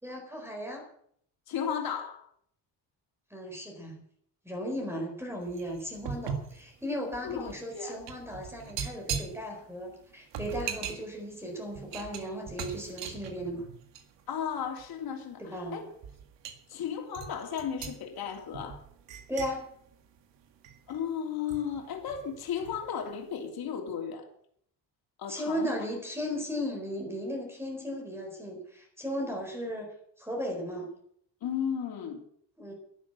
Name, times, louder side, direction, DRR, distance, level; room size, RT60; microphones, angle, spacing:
voice 1, 0.0-0.8 3.3-4.0 4.4-13.7 15.4-15.8 19.3-19.7 25.3-29.9 30.2-30.9 32.6-32.7, equal, 5° right, 4.5 m, -36 dB
voice 2, 1.5-2.3 7.2-8.0 14.3-15.8 16.7-18.8 20.9-24.3 25.2-25.7 31.4-32.2, left 8 dB, 55° left, 3.3 m, -34 dB
sound 1, 5.4-14.3 14.6-14.9 15.5-15.7 16.0-16.6 17.1-21.0 21.5-22.9 23.1-23.4, right 7 dB, 80° right, 2.0 m, -40 dB
11.5 x 11.5 x 8.0 m
cardioid pair, 155°, 43 cm